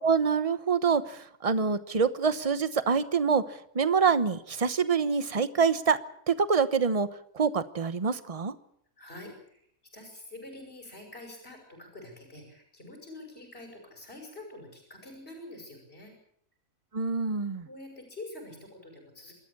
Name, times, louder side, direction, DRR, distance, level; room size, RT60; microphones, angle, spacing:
voice 1, 0.0-3.4 3.7-6.0 6.3-7.1 7.3-8.5 16.9-17.7, right 5 dB, 30° right, 13 dB, 1.0 m, -26 dB
voice 2, 9.0-9.6 9.9-16.1 17.6-19.3, left 2 dB, 45° left, 2 dB, 6.0 m, -46 dB
26.5 x 13.5 x 8.5 m, 0.68 s
omnidirectional pair, 1.4 m